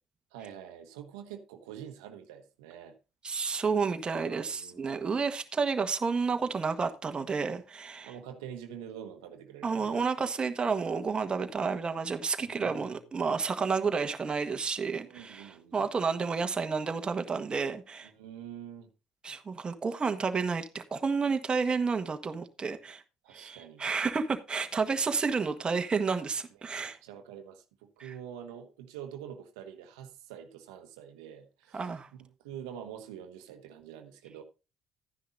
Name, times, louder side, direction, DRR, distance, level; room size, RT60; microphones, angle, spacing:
voice 1, 0.3-3.0 4.1-5.2 8.0-10.1 12.4-13.1 15.0-15.8 18.0-18.9 23.2-23.8 24.8-25.3 26.6-34.4, right 9 dB, 85° right, 1.1 m, -46 dB
voice 2, 3.2-8.1 9.6-18.1 19.2-23.0 23.3-27.0 28.0-28.1 31.7-32.1, right 5 dB, 35° right, 1.5 m, -31 dB
12.0 x 10.0 x 2.6 m
hypercardioid pair, 60°, 3 cm